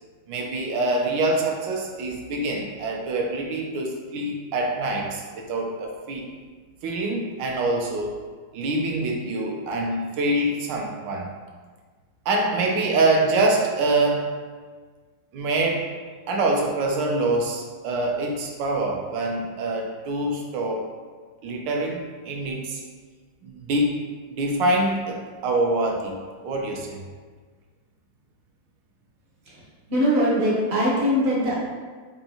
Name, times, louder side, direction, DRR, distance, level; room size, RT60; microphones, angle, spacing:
voice 1, 0.3-6.2 6.8-8.2 8.5-11.3 12.3-14.3 15.3-15.9 16.3-20.9 21.4-22.8 23.4-24.0 24.3-26.1 26.4-27.0, right 2 dB, 80° right, 0 dB, 1.3 m, -25 dB
voice 2, 29.9-31.6, equal, 50° right, -6 dB, 0.8 m, -21 dB
4.6 x 2.6 x 2.7 m, 1.5 s
omnidirectional pair, 2.0 m